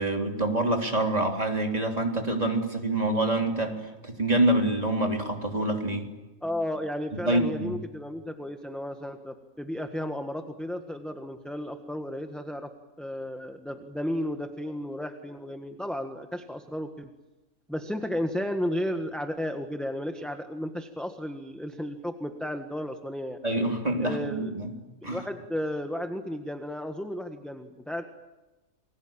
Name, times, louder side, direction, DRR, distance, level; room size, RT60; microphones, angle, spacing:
voice 1, 0.0-6.1 7.1-7.8 23.4-24.7 25.0-25.2, right 1 dB, 25° right, 2 dB, 3.5 m, -26 dB
voice 2, 6.4-12.7 13.0-17.1 17.7-23.4 24.0-24.6 25.0-28.0, equal, ahead, 5 dB, 1.4 m, -33 dB
29.0 x 21.5 x 8.9 m, 1.1 s
omnidirectional pair, 1.5 m